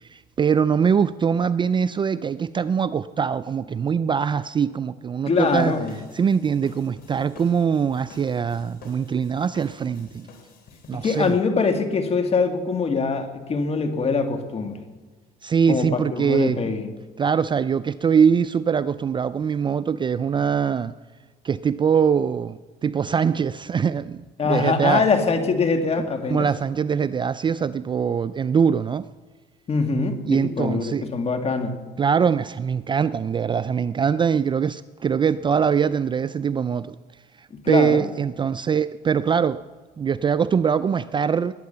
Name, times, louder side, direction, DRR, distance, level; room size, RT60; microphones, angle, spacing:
voice 1, 0.1-5.7 6.1-10.3 10.9-11.4 15.4-16.6 17.2-20.9 21.4-25.0 26.3-29.1 30.3-31.0 32.0-37.0 37.7-39.6 40.0-41.5, right 7 dB, 30° right, 15 dB, 0.4 m, -22 dB
voice 2, 5.3-6.0 10.9-14.8 15.7-16.9 24.4-26.5 29.7-31.8 37.5-38.1, left 4 dB, 35° left, 6 dB, 2.0 m, -23 dB
sound 1, 5.5-11.3, left 3 dB, 65° left, 3.3 m, -48 dB
20.0 x 9.4 x 6.8 m, 1.4 s
cardioid pair, 110°, 17 cm